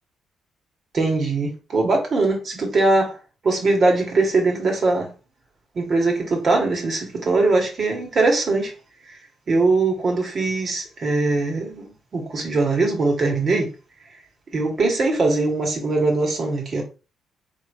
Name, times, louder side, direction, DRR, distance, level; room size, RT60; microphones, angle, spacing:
voice 1, 0.9-3.2 3.4-5.1 5.7-8.7 9.5-13.7 14.5-16.8, right 3 dB, 45° right, 1.8 m, -21 dB
3.4 x 3.2 x 4.6 m
cardioid pair, 90°, 0 cm